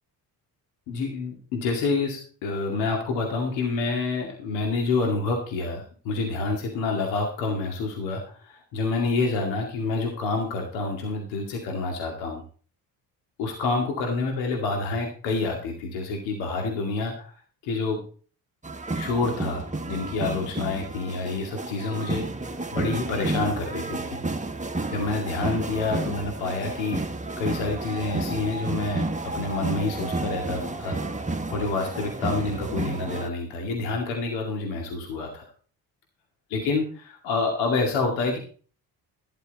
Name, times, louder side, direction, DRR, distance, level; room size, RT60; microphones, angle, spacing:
voice 1, 0.9-12.4 13.4-17.3 17.6-18.0 18.9-22.2 22.7-24.2 24.9-27.0 27.4-29.1 29.3-31.0 31.5-35.4 36.5-38.4, left 3 dB, 80° left, 1 dB, 2.3 m, -28 dB
sound 1, 18.6-33.3, right 2 dB, 15° right, 1.6 m, -31 dB
12.0 x 11.0 x 4.0 m, 0.42 s
hypercardioid pair, 55°, 44 cm